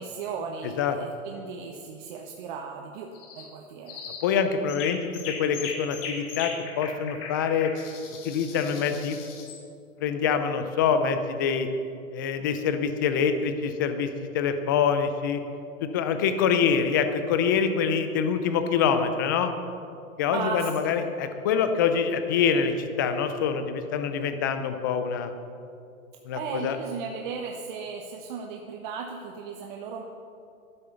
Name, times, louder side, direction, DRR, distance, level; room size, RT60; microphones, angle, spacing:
voice 1, 0.0-3.1 3.3-4.0 20.3-20.9 26.3-30.0, right 5 dB, 35° right, 2 dB, 1.1 m, -36 dB
sound 1, 3.1-3.5 3.9-4.3 4.7-9.6, left 5 dB, 40° left, 2.7 m, -39 dB
voice 2, 4.2-5.0 5.3-7.7 8.2-9.2 10.0-11.7 12.1-14.1 14.3-15.4 15.8-19.5 20.2-25.3 26.3-26.8, left 6 dB, 15° left, 8 dB, 0.4 m, -25 dB
13.0 x 11.0 x 6.9 m, 2.5 s
hypercardioid pair, 140°, 42 cm